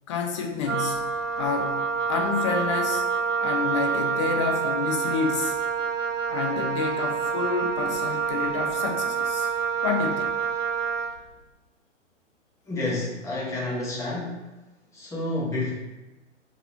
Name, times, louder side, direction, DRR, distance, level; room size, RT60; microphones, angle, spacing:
voice 1, 0.1-1.0 1.4-1.8 2.1-3.1 3.4-5.6 6.3-9.5 9.8-10.3, left 5 dB, 25° left, 3 dB, 0.4 m, -29 dB
Wind instrument woodwind instrument, 0.6-11.2, right 6 dB, 80° right, 0.5 m, -27 dB
voice 2, 12.7-14.4 14.9-15.7, left 2 dB, 10° left, -5 dB, 0.8 m, -29 dB
3.8 x 3.0 x 3.9 m, 1.1 s
figure-of-eight pair, 110°, 37 cm